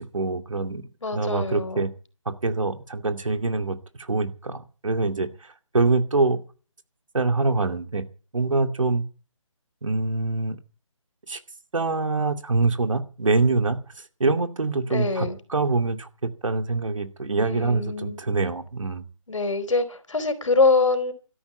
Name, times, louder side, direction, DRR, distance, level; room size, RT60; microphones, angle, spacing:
voice 1, 0.0-0.8 1.1-1.9 2.3-6.4 7.1-8.0 8.3-9.0 9.8-10.6 11.3-11.4 11.7-13.8 14.2-19.0, right 3 dB, 70° right, 7 dB, 2.5 m, -25 dB
voice 2, 1.0-1.9 14.9-15.4 17.4-18.2 19.3-21.1, left 3 dB, 70° left, 10 dB, 4.2 m, -24 dB
13.0 x 11.0 x 9.1 m, 0.37 s
figure-of-eight pair, 155°, 17 cm